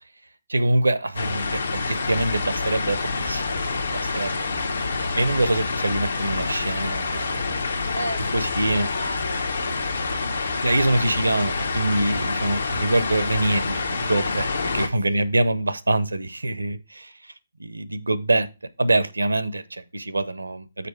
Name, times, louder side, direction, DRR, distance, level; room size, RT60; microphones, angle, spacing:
voice 1, 0.5-3.5 3.8-4.5 5.2-7.5 8.3-8.9 10.6-17.1 17.6-18.5 18.8-20.9, right 2 dB, 75° right, 0.7 m, -24 dB
sound 1, 1.1-14.9, left 4 dB, 65° left, 1.1 m, -27 dB
voice 2, 7.9-11.3 15.0-15.3, equal, 90° left, 1.7 m, -37 dB
6.9 x 4.8 x 4.6 m
figure-of-eight pair, 135°, 0 cm